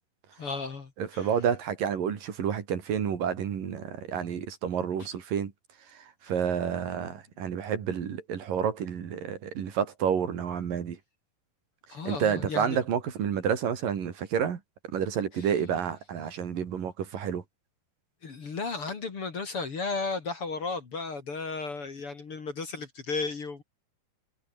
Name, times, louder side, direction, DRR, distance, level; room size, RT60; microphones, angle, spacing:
voice 1, 0.4-1.3 11.9-12.8 15.4-15.5 18.2-23.6, left 4 dB, 40° left, 3.1 m, -34 dB
voice 2, 1.0-5.5 5.9-11.0 12.1-17.4, right 8 dB, 65° right, 4.2 m, -30 dB
omnidirectional pair, 4.3 m